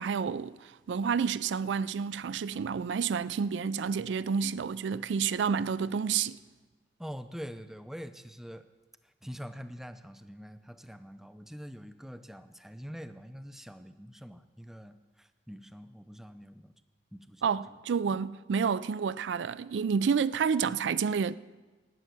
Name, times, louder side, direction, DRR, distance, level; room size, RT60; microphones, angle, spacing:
voice 1, 0.0-6.4 17.4-21.3, right 6 dB, 80° right, 0.4 m, -29 dB
voice 2, 7.0-8.7 9.0-16.7 17.1-17.8, equal, ahead, 0.4 m, -45 dB
11.0 x 7.1 x 9.3 m
head